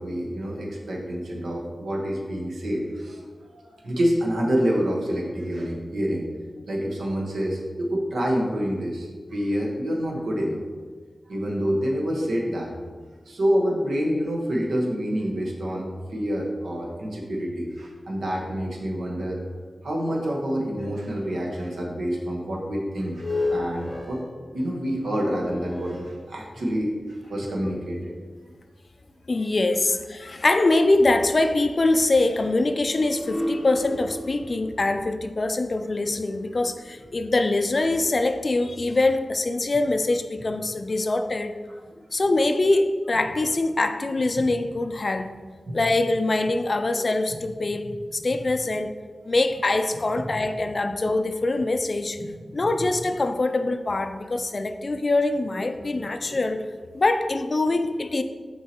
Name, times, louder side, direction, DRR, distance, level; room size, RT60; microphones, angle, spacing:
voice 1, 0.0-3.2 3.5-6.3 6.7-10.6 11.3-12.7 13.3-19.4 19.8-24.2 24.5-26.9 27.3-28.0 45.7-45.8 52.2-52.3 56.0-56.1, equal, 85° right, -2 dB, 1.2 m, -27 dB
sound 1, 23.0-26.9 27.6-27.7 32.9-37.2, left 2 dB, 10° left, 0.8 m, -33 dB
voice 2, 29.3-41.6 42.1-45.3 45.7-47.9 48.1-48.9 49.3-52.2 52.5-56.6 56.9-58.2, left 2 dB, 40° left, 8 dB, 0.3 m, -23 dB
7.0 x 4.7 x 2.9 m, 1.5 s
wide cardioid pair, 115°, 0 cm